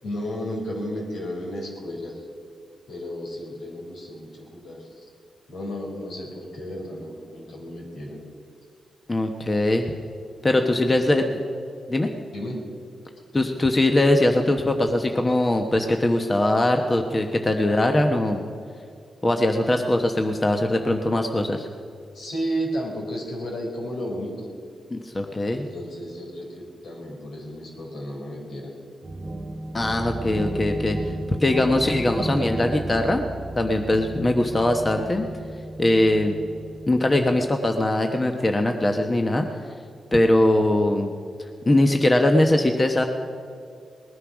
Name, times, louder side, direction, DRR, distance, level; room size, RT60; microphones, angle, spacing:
voice 1, 0.0-2.3 2.9-5.1 5.5-8.2 10.9-11.2 12.3-12.6 22.1-24.5 25.5-28.7, equal, 80° left, -1 dB, 3.9 m, -33 dB
voice 2, 9.1-9.9 10.4-11.2 11.9-12.1 13.3-18.4 19.2-21.7 24.9-25.7 29.7-31.0 31.4-33.2 33.6-35.3 35.8-36.4 36.9-39.5 40.1-41.2 41.7-43.0, left 1 dB, 25° left, 4 dB, 1.0 m, -21 dB
sound 1, 29.0-37.5, right 2 dB, 40° right, 1.1 m, -33 dB
19.5 x 9.8 x 6.1 m, 2.3 s
cardioid pair, 70°, 0 cm